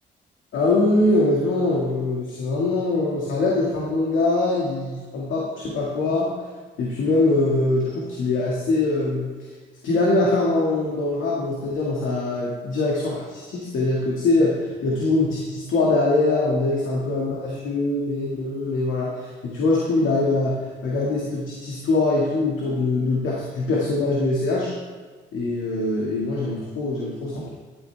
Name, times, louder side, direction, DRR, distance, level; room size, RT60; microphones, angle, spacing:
voice 1, 0.5-6.3 6.8-9.3 9.8-24.7 25.3-27.5, left 2 dB, 80° left, -4 dB, 2.0 m, -23 dB
13.5 x 9.5 x 3.5 m, 1.5 s
cardioid pair, 90°, 20 cm